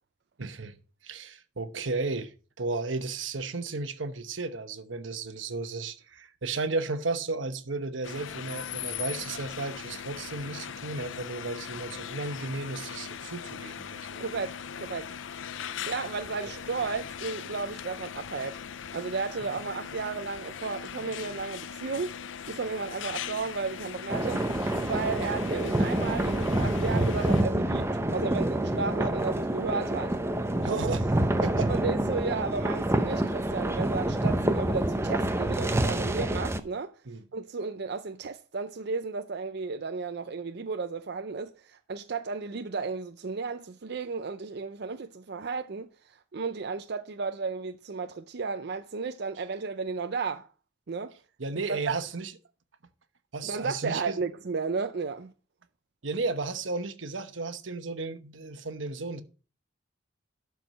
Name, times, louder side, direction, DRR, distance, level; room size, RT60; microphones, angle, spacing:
voice 1, 0.4-0.8 1.0-14.2 29.0-29.1 30.6-31.7 37.1-37.2 51.4-52.3 53.3-54.2 56.0-59.2, right 3 dB, 90° right, 1.0 m, -34 dB
sound 1, 8.0-27.4, left 8 dB, 80° left, 0.5 m, -40 dB
voice 2, 14.2-15.1 15.9-18.6 18.9-22.1 22.5-24.4 24.8-30.2 31.7-37.0 37.3-50.5 50.9-51.1 51.7-52.0 53.4-55.3, right 4 dB, 60° right, 0.5 m, -33 dB
sound 2, 24.1-36.6, right 1 dB, 15° right, 0.7 m, -27 dB
12.0 x 4.7 x 5.3 m
head